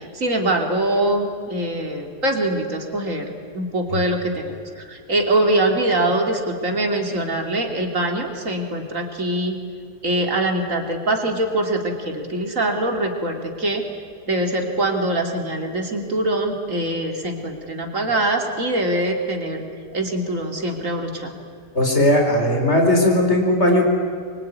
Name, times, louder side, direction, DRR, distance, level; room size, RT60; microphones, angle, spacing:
voice 1, 0.0-9.6 10.0-13.8 14.3-19.6 19.9-21.4, right 1 dB, 50° right, 3 dB, 3.4 m, -23 dB
voice 2, 21.7-23.8, left 1 dB, 40° left, 2 dB, 4.9 m, -17 dB
25.0 x 24.0 x 9.6 m, 2.1 s
omnidirectional pair, 1.8 m